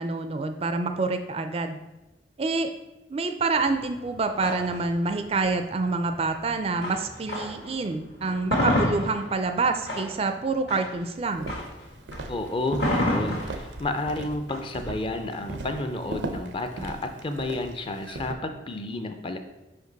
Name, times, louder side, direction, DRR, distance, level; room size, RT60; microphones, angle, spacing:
voice 1, 0.0-1.8 2.4-2.7 3.1-11.5, right 3 dB, 35° right, 7 dB, 0.4 m, -27 dB
sound 1, 3.6-7.7 8.1-16.1, left 1 dB, 70° left, 1.6 m, -31 dB
Walk footsteps, 11.3-18.3, right 2 dB, 80° right, 0.6 m, -38 dB
voice 2, 12.3-19.4, left 2 dB, 30° left, 7 dB, 0.4 m, -31 dB
5.2 x 5.1 x 3.9 m, 0.99 s
head